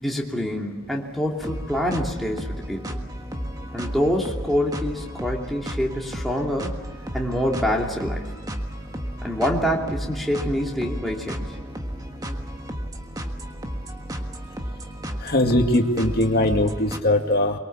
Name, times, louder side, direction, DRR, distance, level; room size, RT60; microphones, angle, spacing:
voice 1, 0.0-2.8 3.7-6.7 7.1-8.3 9.2-11.4, equal, ahead, -2 dB, 2.7 m, -26 dB
sound 1, 1.4-17.0, equal, 15° right, 1.5 m, -33 dB
voice 2, 15.2-17.5, left 1 dB, 45° left, 3 dB, 2.2 m, -20 dB
24.0 x 23.0 x 7.3 m, 1.3 s
head